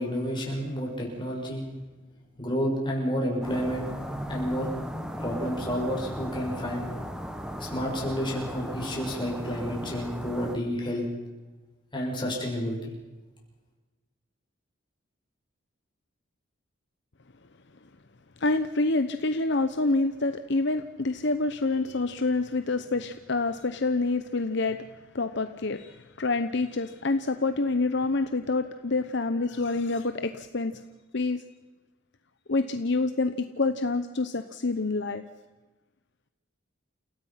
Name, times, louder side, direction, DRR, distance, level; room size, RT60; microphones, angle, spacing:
voice 1, 0.0-1.6 2.4-3.9 4.3-4.7 5.2-6.9 7.6-11.0 11.9-12.9, equal, 25° left, -1 dB, 6.7 m, -30 dB
sound 1, 3.4-10.6, equal, 5° right, 1.6 m, -36 dB
voice 2, 18.4-24.8 25.1-30.8 31.1-31.4 32.5-35.2, left 3 dB, 55° left, 9 dB, 0.9 m, -27 dB
29.5 x 17.0 x 5.8 m, 1.2 s
head